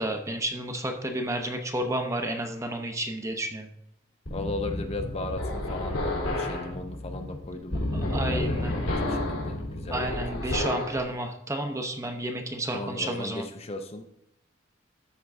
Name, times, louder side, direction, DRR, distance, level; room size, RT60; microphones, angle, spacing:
voice 1, 0.0-3.7 7.9-8.8 9.9-13.5, right 1 dB, 15° right, 4 dB, 0.8 m, -31 dB
sound 1, 4.3-11.0, left 1 dB, 90° left, 2.6 m, -31 dB
voice 2, 4.3-10.9 12.7-14.2, left 2 dB, 30° left, 6 dB, 0.6 m, -37 dB
13.0 x 4.6 x 3.6 m, 0.79 s
head